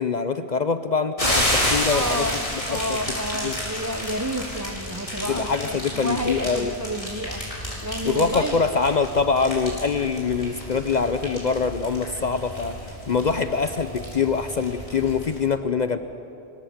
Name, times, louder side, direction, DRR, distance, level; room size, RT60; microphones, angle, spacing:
voice 1, 0.0-2.3 2.7-3.6 5.3-6.7 8.0-12.7 13.1-16.0, left 5 dB, 50° left, 10 dB, 0.8 m, -24 dB
sound 1, 1.2-15.4, left 1 dB, 35° left, 5.3 m, -30 dB
voice 2, 1.8-7.4 7.8-8.6, equal, 15° right, 7 dB, 1.1 m, -30 dB
27.0 x 18.0 x 7.3 m, 2.8 s
omnidirectional pair, 1.0 m